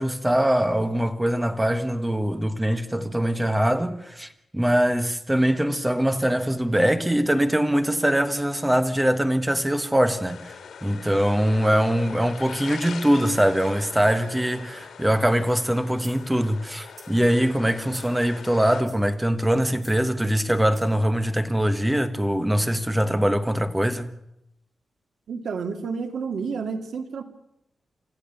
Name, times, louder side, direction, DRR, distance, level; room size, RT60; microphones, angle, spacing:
voice 1, 0.0-10.5 10.8-24.1, equal, 10° right, 1.5 m, -22 dB
sound 1, 10.3-18.8, left 6 dB, 85° left, 3.1 m, -41 dB
sound 2, 16.0-16.3 16.8-17.2 17.9-18.2 18.7-19.1 19.7-20.0 20.7-21.0, right 2 dB, 25° right, 4.9 m, -48 dB
voice 2, 25.3-27.2, right 5 dB, 80° right, 2.3 m, -30 dB
29.5 x 14.5 x 7.0 m
wide cardioid pair, 145°, 0 cm